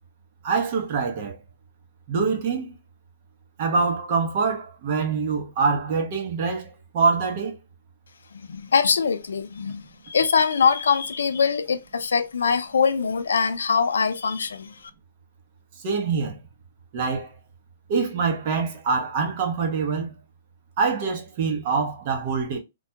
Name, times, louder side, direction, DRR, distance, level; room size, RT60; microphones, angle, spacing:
voice 1, 0.4-1.4 2.1-2.8 3.6-7.6 15.8-16.4 16.9-17.3 17.9-20.1 20.8-22.6, right 5 dB, 45° right, 0.7 m, -25 dB
voice 2, 8.5-14.7, left 6 dB, 80° left, 0.3 m, -23 dB
2.2 x 2.1 x 2.7 m
hypercardioid pair, 135°, 0 cm